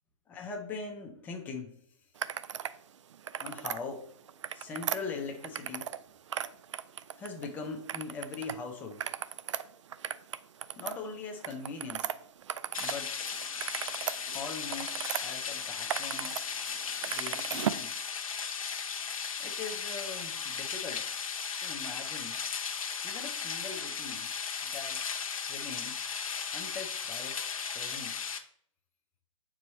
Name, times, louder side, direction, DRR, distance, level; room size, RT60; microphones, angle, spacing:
voice 1, 0.3-2.1 3.4-4.1 4.5-5.9 7.2-9.1 10.8-12.1 12.8-13.1 14.3-16.6 17.0-17.9 19.4-21.1 21.6-22.4 23.0-24.3 24.6-25.1 25.4-26.1 26.5-28.2, left 4 dB, 10° left, 2 dB, 0.7 m, -41 dB
sound 1, 2.2-2.8 3.1-3.8 4.3-6.0 6.3-7.5 7.9-8.5 8.9-13.0 13.3-15.2 15.7-16.4 16.7-17.9, right 9 dB, 60° right, 0.4 m, -36 dB
sound 2, 12.7-28.4, left 6 dB, 80° left, 0.8 m, -36 dB
6.6 x 4.8 x 3.0 m, 0.62 s
hypercardioid pair, 155°, 17 cm